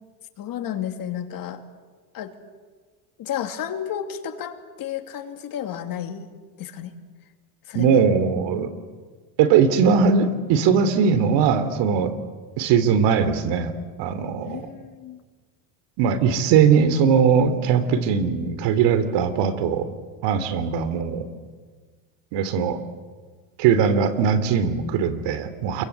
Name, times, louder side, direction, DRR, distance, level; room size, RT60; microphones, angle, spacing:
voice 1, 0.4-1.6 2.1-2.3 3.2-6.3 6.6-6.9 7.7-8.0 14.5-15.2, left 9 dB, 45° left, 7 dB, 2.7 m, -32 dB
voice 2, 7.7-8.7 9.4-12.1 12.6-13.7 14.0-14.7 16.0-19.9 20.2-21.3 22.3-22.8 23.6-25.8, right 6 dB, 60° right, 12 dB, 3.2 m, -20 dB
28.0 x 23.0 x 8.3 m, 1.5 s
supercardioid pair, 120°, 47 cm